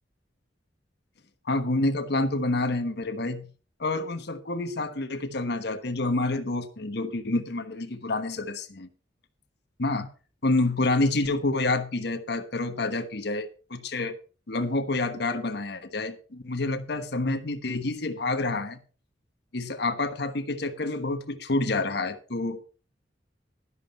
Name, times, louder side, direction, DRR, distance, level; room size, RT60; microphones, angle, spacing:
voice 1, 1.4-3.5 3.8-8.9 9.8-10.1 10.4-14.2 14.5-18.8 19.5-22.6, left 2 dB, 65° left, 1.2 m, -28 dB
11.5 x 11.0 x 4.4 m
head